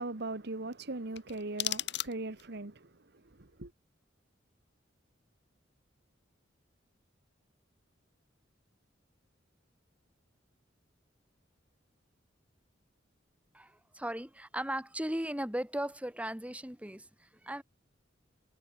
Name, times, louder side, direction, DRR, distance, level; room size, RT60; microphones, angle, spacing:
voice 1, 0.0-2.9 3.4-3.7, right 2 dB, 60° right, 1.5 m, -39 dB
sound 1, 1.1-2.6, left 13 dB, 65° left, 1.8 m, -37 dB
voice 2, 13.5-17.6, right 1 dB, 5° right, 4.4 m, -37 dB
head